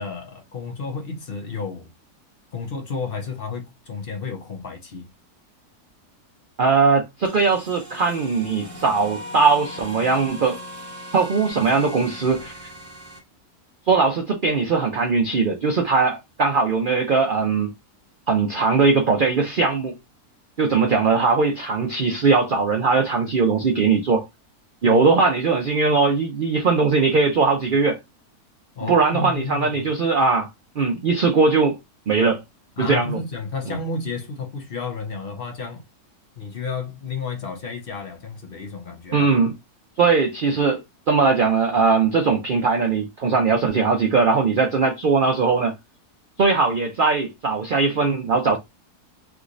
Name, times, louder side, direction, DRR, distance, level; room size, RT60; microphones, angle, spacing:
voice 1, 0.0-1.9 2.5-5.1 24.9-25.1 28.8-29.8 32.8-35.8 36.4-39.3, left 4 dB, 50° left, 0.7 m, -31 dB
voice 2, 6.6-10.6 11.1-12.6 13.9-17.7 18.3-20.0 20.6-24.3 24.8-28.0 28.9-30.5 30.8-31.8 32.1-32.4 32.8-33.2 39.1-39.5 40.0-40.8 41.1-45.7 46.4-48.6, right 4 dB, 85° right, 0.4 m, -20 dB
sound 1, 7.2-13.2, equal, 25° right, 2.1 m, -39 dB
3.4 x 3.1 x 2.5 m
omnidirectional pair, 1.7 m